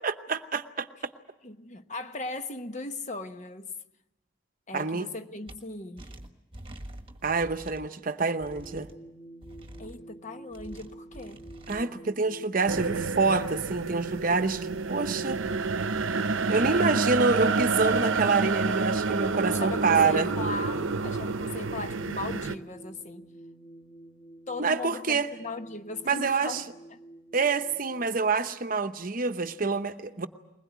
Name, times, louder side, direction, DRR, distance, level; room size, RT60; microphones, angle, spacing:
voice 1, 0.0-0.9 4.7-5.1 7.2-8.9 11.7-15.4 16.5-20.3 24.6-25.3 26.1-26.6 27.3-30.3, right 4 dB, 40° right, 0.8 m, -27 dB
voice 2, 1.4-3.7 4.7-6.1 9.8-11.4 16.6-17.0 19.5-23.3 24.5-27.0, left 2 dB, 35° left, 1.0 m, -38 dB
sound 1, 5.5-5.6 6.0-7.9 8.4-8.9 9.4-10.0 10.5-11.8, right 1 dB, 25° right, 1.5 m, -46 dB
sound 2, 8.4-28.2, right 1 dB, 20° left, 2.0 m, -48 dB
sound 3, 12.7-22.6, right 4 dB, 70° right, 0.8 m, -29 dB
21.5 x 20.5 x 9.4 m
head